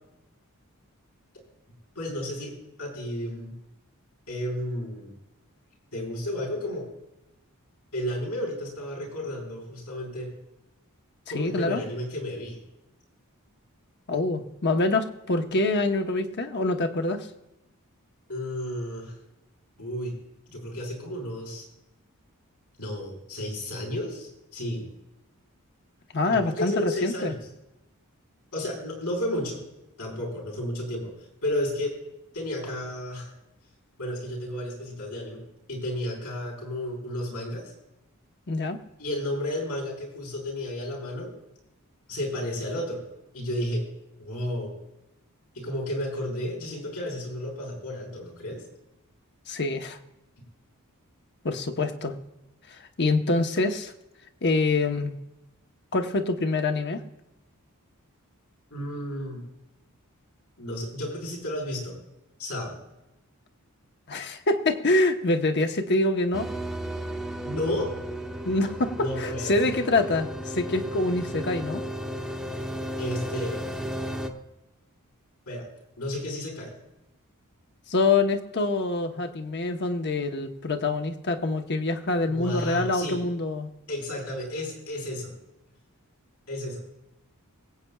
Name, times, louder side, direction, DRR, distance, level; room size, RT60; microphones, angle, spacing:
voice 1, 1.9-3.5 4.3-5.1 5.9-6.9 7.9-10.3 11.3-12.6 18.3-19.1 19.8-20.1 20.5-21.7 22.8-24.9 26.3-27.4 28.5-29.6 30.0-31.1 31.4-31.9 32.3-33.3 34.0-35.4 35.7-37.7 39.0-41.3 42.1-43.0 43.3-43.9 44.2-44.8 45.5-48.6 58.7-59.4 60.6-62.0 62.4-62.8 67.4-67.9 69.0-69.8 73.0-73.9 75.5-75.6 76.0-76.7 82.2-83.2 83.9-85.3 86.5-86.8, left 1 dB, 80° left, -1 dB, 4.9 m, -32 dB
voice 2, 11.3-11.8 14.1-17.3 26.1-27.3 38.5-38.8 49.5-50.0 51.4-52.1 52.7-53.9 54.4-55.1 55.9-57.0 64.1-66.5 68.4-71.8 77.9-83.7, left 2 dB, 50° left, 6 dB, 1.0 m, -25 dB
sound 1, 66.3-74.3, equal, ahead, 0.8 m, -34 dB
23.5 x 8.6 x 2.3 m, 0.92 s
head